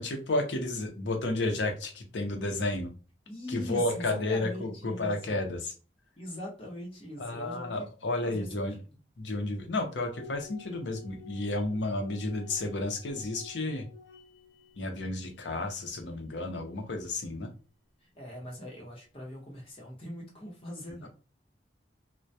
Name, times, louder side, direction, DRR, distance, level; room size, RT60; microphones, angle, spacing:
voice 1, 0.0-2.9 3.5-5.7 7.2-8.7 9.2-13.9 14.8-17.5, left 2 dB, 90° left, 4 dB, 0.6 m, -32 dB
voice 2, 3.3-5.4 6.2-7.9 8.2-8.9 18.0-21.1, left 1 dB, 30° left, -2 dB, 0.8 m, -41 dB
sound 1, 10.1-16.5, left 4 dB, 60° left, 0.8 m, -52 dB
2.2 x 2.1 x 2.7 m, 0.35 s
head